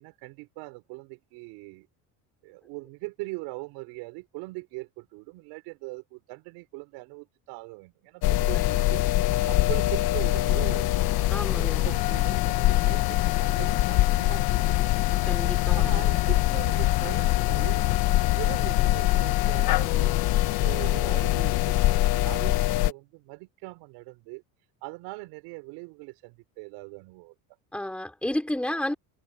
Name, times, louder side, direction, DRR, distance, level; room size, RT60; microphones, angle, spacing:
voice 1, 0.0-1.9 2.4-9.0 9.5-11.1 11.6-15.0 15.8-17.8 18.4-20.2 20.6-24.4 24.8-27.3, right 26 dB, 90° right, 6.2 m, -40 dB
sound 1, 8.2-22.9, left 16 dB, 65° left, 1.3 m, -23 dB
voice 2, 11.3-11.8 15.1-15.9 27.7-28.9, left 1 dB, 5° left, 3.2 m, -31 dB
cardioid pair, 135°, 40 cm